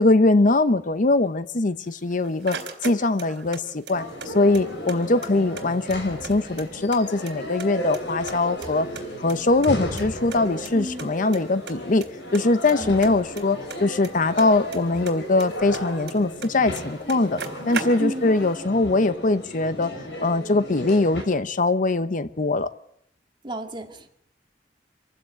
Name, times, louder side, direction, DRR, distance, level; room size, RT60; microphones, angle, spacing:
voice 1, 0.0-2.6 2.8-8.9 9.2-12.0 12.3-17.4 17.7-19.9 20.2-22.7, left 2 dB, 50° left, 13 dB, 0.8 m, -22 dB
sound 1, 1.9-3.6 3.9-5.0 5.2-5.3 5.6-7.0 7.3-8.0 8.3-9.7 10.0-10.1 10.3-10.4 10.7-10.8 11.0-11.4 11.7-12.1 12.3-14.8 15.1-16.5 16.8-16.9 17.1-18.3, right 5 dB, 75° right, 3.7 m, -36 dB
sound 2, 3.9-21.2, equal, 75° left, 6.2 m, -35 dB
voice 2, 10.7-11.1 12.7-12.9 18.0-18.3 23.4-24.1, right 1 dB, 25° right, 5 dB, 1.9 m, -32 dB
26.0 x 15.5 x 7.7 m, 0.73 s
head